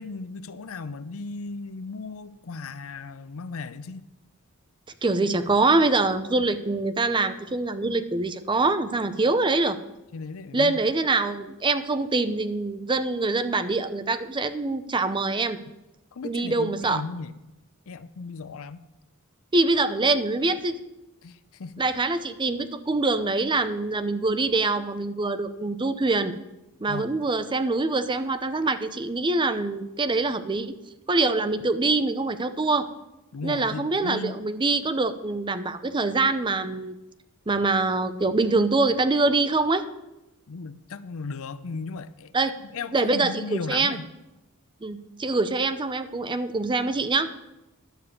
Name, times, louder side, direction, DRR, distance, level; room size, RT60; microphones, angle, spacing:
voice 1, 0.0-4.0 10.1-10.8 16.1-17.3 17.9-18.8 21.2-21.8 26.9-27.1 33.3-34.4 40.5-42.3 42.7-44.0, left 4 dB, 70° left, 14 dB, 0.5 m, -36 dB
voice 2, 5.0-9.8 10.5-15.6 16.2-17.0 19.5-20.8 21.8-26.3 26.8-30.7 31.1-32.9 33.4-36.9 37.5-39.8 42.3-42.5 42.9-44.0 44.8-47.3, right 3 dB, 20° right, 11 dB, 0.5 m, -24 dB
11.0 x 6.9 x 6.6 m, 0.95 s
head